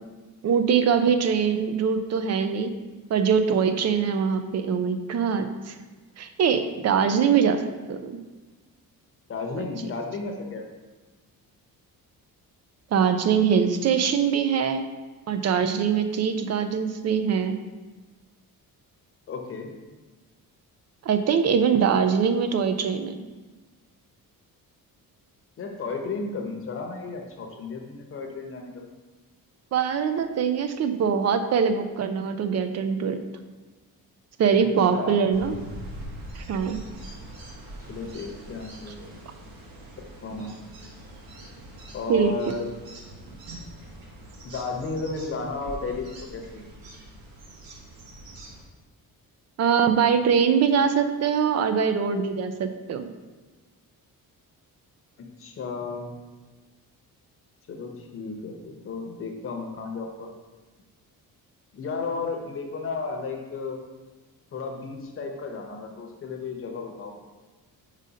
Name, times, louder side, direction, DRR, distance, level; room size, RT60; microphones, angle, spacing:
voice 1, 0.4-2.7 3.1-5.8 6.2-8.2 9.6-9.7 12.9-14.9 15.3-17.6 21.0-23.2 29.7-33.2 34.4-35.5 36.3-36.8 42.1-42.3 49.6-53.1, right 7 dB, 45° right, 9 dB, 0.4 m, -23 dB
voice 2, 9.3-10.7 19.3-19.7 25.6-28.8 34.9-35.2 37.9-39.1 40.0-40.5 41.9-42.7 44.4-46.6 55.2-56.1 57.7-60.3 61.7-63.8 64.5-67.1, left 4 dB, 35° left, 2 dB, 0.8 m, -33 dB
sound 1, 35.3-48.6, right 1 dB, 75° right, 1.1 m, -43 dB
5.2 x 4.1 x 4.9 m, 1.3 s
cardioid pair, 180°, 36 cm